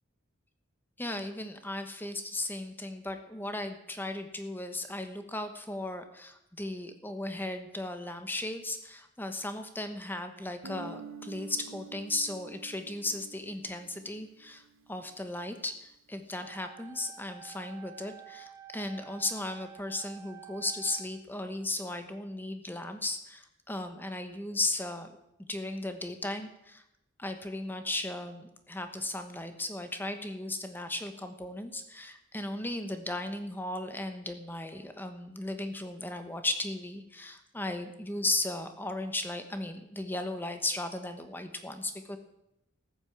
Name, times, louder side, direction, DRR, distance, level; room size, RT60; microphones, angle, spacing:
voice 1, 1.0-14.6 14.9-25.1 25.5-26.8 27.2-42.2, left 2 dB, 10° left, 7 dB, 1.1 m, -36 dB
Guitar, 10.6-15.2, right 4 dB, 75° right, 1.0 m, -48 dB
sound 1, 16.4-21.4, right 10 dB, 15° right, 1.6 m, -50 dB
14.0 x 9.0 x 7.4 m, 0.84 s
head